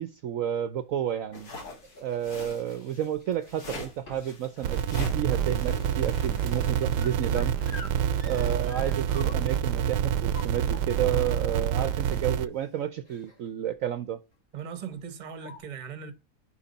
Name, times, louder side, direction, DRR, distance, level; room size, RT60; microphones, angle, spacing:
voice 1, 0.0-1.5 2.0-7.6 8.2-14.2, right 10 dB, 65° right, 0.9 m, -31 dB
sound 1, 1.1-2.5 3.1-3.6 4.1-4.4 4.8-9.6 10.2-11.2 12.1-12.2 12.5-12.7 13.0-13.5 13.8-14.0 14.9-15.0 15.3-15.6, left 3 dB, 50° left, 2.8 m, -48 dB
sound 2, 1.3-7.0, left 1 dB, 70° left, 2.3 m, -42 dB
sound 3, 4.6-12.5, right 9 dB, 90° right, 1.2 m, -27 dB
voice 2, 14.5-16.1, right 7 dB, 35° right, 0.8 m, -39 dB
7.1 x 5.2 x 4.0 m
omnidirectional pair, 1.7 m